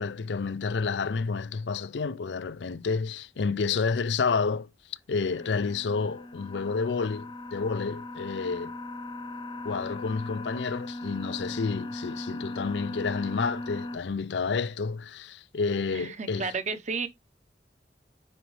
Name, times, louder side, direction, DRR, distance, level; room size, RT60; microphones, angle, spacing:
voice 1, 0.0-4.7 5.1-8.8 9.6-16.5, left 4 dB, 80° left, 0.5 m, -30 dB
sound 1, 5.3-14.0, left 2 dB, 30° left, 0.9 m, -38 dB
voice 2, 15.9-17.1, right 4 dB, 45° right, 1.0 m, -32 dB
9.6 x 4.1 x 3.2 m
head